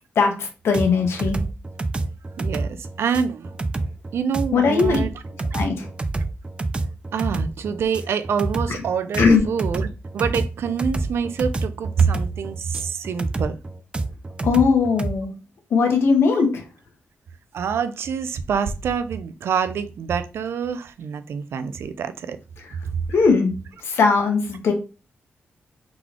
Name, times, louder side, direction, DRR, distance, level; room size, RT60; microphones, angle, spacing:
voice 1, 0.1-1.4 4.5-5.0 5.5-5.8 8.7-8.8 9.2-9.4 14.4-15.3 15.7-16.6 23.1-23.5 23.8-24.7, left 5 dB, 85° left, 1.2 m, -19 dB
sound 1, 0.7-15.2, right 2 dB, 25° right, 0.4 m, -28 dB
voice 2, 2.4-3.5 4.1-5.1 7.1-9.9 10.1-13.6 17.5-22.4 22.9-23.0, right 6 dB, 80° right, 0.5 m, -25 dB
3.9 x 3.7 x 3.0 m
wide cardioid pair, 120°, 4 cm